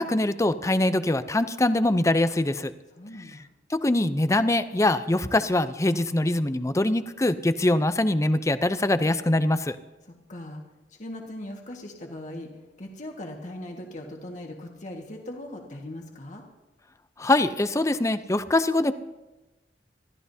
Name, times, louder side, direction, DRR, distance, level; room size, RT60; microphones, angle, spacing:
voice 1, 0.0-2.7 3.7-9.8 17.2-18.9, left 1 dB, 15° left, 12 dB, 0.5 m, -23 dB
voice 2, 2.9-3.4 10.1-10.6 10.9-12.5 12.8-16.4, left 1 dB, 45° left, 1 dB, 1.7 m, -39 dB
27.0 x 13.5 x 2.8 m, 1.1 s
head